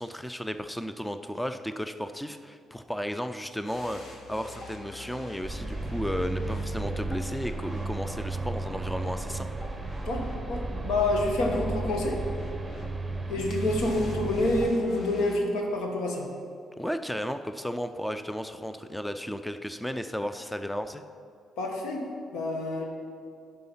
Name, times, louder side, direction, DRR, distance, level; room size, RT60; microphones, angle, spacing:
voice 1, 0.0-9.5 16.8-21.0, equal, 5° left, 9 dB, 0.4 m, -34 dB
sound 1, 3.6-15.5, left 1 dB, 50° left, 1.7 m, -45 dB
sound 2, 5.4-14.7, right 3 dB, 20° right, 0.8 m, -34 dB
voice 2, 10.5-12.2 13.3-16.3 21.6-22.0 22.3-22.8, left 2 dB, 85° left, 1 dB, 1.4 m, -27 dB
9.7 x 5.7 x 5.5 m, 2.4 s
cardioid pair, 90°, 0 cm